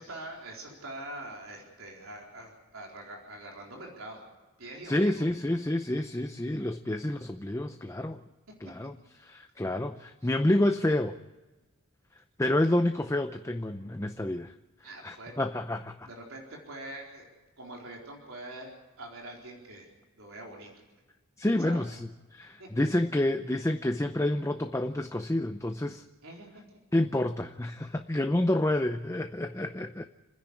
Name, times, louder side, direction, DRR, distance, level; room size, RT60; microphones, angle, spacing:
voice 1, 0.0-4.2 4.6-5.2 14.8-15.3 16.1-17.3 17.6-18.7 19.0-19.9 20.2-20.7 21.4-21.8 22.6-22.8 26.2-26.5, right 1 dB, 65° right, -1 dB, 4.2 m, -44 dB
voice 2, 4.8-8.2 8.6-8.9 9.2-11.2 12.4-14.5 15.0-16.1 21.4-26.0 26.9-30.1, left 1 dB, 15° left, 7 dB, 0.6 m, -29 dB
29.0 x 10.5 x 9.7 m, 1.2 s
head